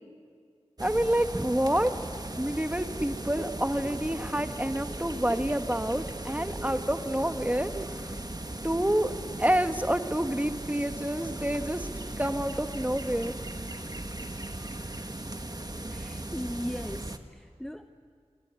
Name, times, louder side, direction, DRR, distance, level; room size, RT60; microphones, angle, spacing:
voice 1, 0.8-1.9 2.4-8.1 8.6-9.1 9.4-11.9 12.2-13.3, right 1 dB, 15° right, 8 dB, 1.5 m, -28 dB
sound 1, 0.8-17.2, right 1 dB, 35° right, 1.5 m, -37 dB
voice 2, 15.9-17.9, equal, 5° left, 7 dB, 0.9 m, -38 dB
26.5 x 26.5 x 8.3 m, 2.2 s
wide cardioid pair, 40°, 12 cm